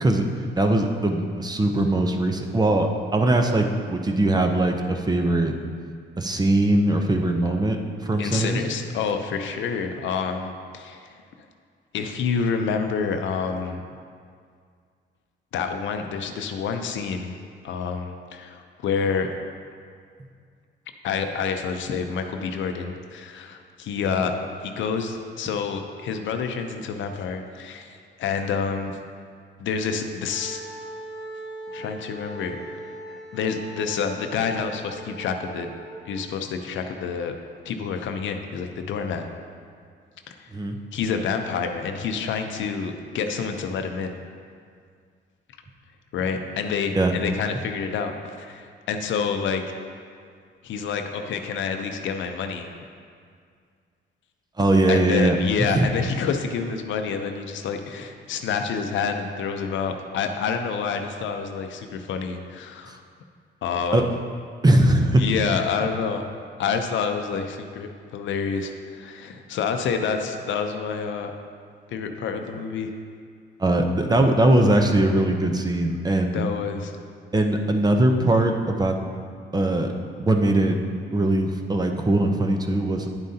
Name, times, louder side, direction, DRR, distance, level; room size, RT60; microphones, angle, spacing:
voice 1, 0.0-5.5 6.2-8.6 24.1-24.2 40.5-40.8 47.0-47.1 54.6-55.4 55.7-55.9 63.9-64.0 64.6-65.3 73.6-76.4 77.3-79.0 79.5-79.9 80.2-80.8 81.1-83.1, right 1 dB, 20° right, 4 dB, 0.7 m, -21 dB
voice 2, 8.2-11.2 11.9-13.8 15.5-17.4 17.6-19.3 21.0-24.3 24.6-28.9 29.6-30.6 31.7-35.7 36.0-37.3 37.6-39.3 40.3-40.5 40.9-44.2 46.1-49.6 50.6-52.7 54.9-63.0 63.6-64.0 65.2-66.2 66.6-71.3 71.9-72.9 76.3-77.0, left 6 dB, 75° left, 6 dB, 0.7 m, -28 dB
Wind instrument woodwind instrument, 30.3-36.3, right 1 dB, ahead, 1.7 m, -40 dB
9.8 x 7.5 x 2.8 m, 2.1 s
cardioid pair, 90°, 20 cm